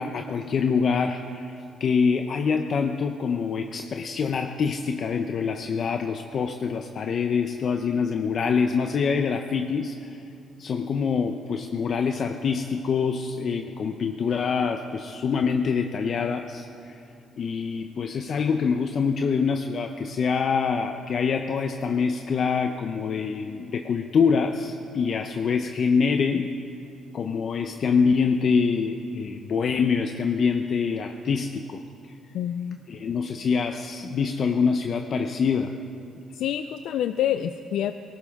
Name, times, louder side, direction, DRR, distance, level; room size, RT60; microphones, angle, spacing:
voice 1, 0.0-10.2 10.6-16.9 17.4-26.5 27.1-31.8 32.9-35.7, left 5 dB, 55° left, 5 dB, 0.7 m, -25 dB
voice 2, 32.3-32.8 36.3-37.9, left 10 dB, 80° left, 9 dB, 0.4 m, -27 dB
18.5 x 18.5 x 3.7 m, 2.5 s
cardioid pair, 95°, 0 cm